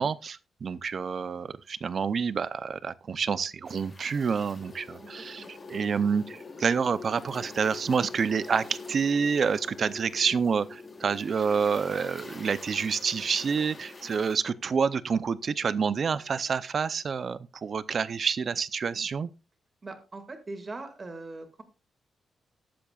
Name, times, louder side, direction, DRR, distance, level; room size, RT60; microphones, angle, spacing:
voice 1, 0.0-5.4 5.7-19.3, right 6 dB, 45° right, 0.5 m, -28 dB
sound 1, 3.6-14.4, left 2 dB, 25° left, 2.6 m, -50 dB
sound 2, 4.6-16.9, left 3 dB, 40° left, 3.7 m, -46 dB
voice 2, 5.0-5.5 19.8-21.6, right 2 dB, 25° right, 2.1 m, -41 dB
18.5 x 7.6 x 2.4 m
wide cardioid pair, 150°, 0 cm